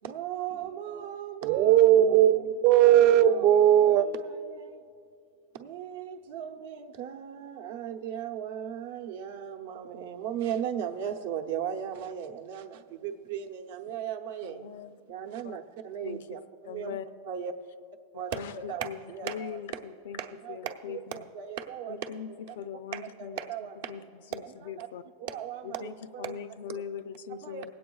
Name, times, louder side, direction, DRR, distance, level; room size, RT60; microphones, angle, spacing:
voice 1, 0.0-2.1 3.2-3.5 3.8-4.8 5.5-14.6 15.1-17.0 17.2-17.5 18.1-19.6 20.2-22.6 22.9-24.0 24.3-24.9 25.2-26.4 26.7-26.8 27.3-27.7, right 9 dB, 70° right, 5 dB, 0.8 m, -37 dB
voice 2, 1.4-4.1, right 11 dB, 45° right, 12 dB, 0.4 m, -19 dB
voice 3, 14.4-14.9 15.4-15.6 16.0-16.4 16.6-17.1 18.3-19.0 19.2-20.2 20.5-21.2 21.9-22.3 22.6-23.4 23.9-24.0 24.3-25.0 25.6-27.7, left 8 dB, 75° left, 12 dB, 0.4 m, -40 dB
25.5 x 8.6 x 2.3 m, 2.4 s
supercardioid pair, 140°, 0 cm